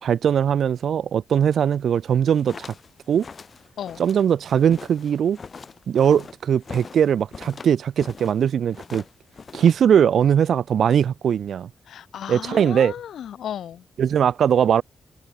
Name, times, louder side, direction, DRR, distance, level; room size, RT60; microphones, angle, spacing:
voice 1, 0.0-2.7 3.1-3.2 4.0-5.4 5.9-9.0 9.5-11.7 12.3-12.9 14.0-14.8, right 8 dB, 60° right, 0.7 m, -20 dB
sound 1, 2.1-8.4 8.7-9.9, left 5 dB, 30° left, 3.6 m, -42 dB
voice 2, 11.9-13.8, left 9 dB, 75° left, 1.3 m, -34 dB
wide cardioid pair, 180°, 0 cm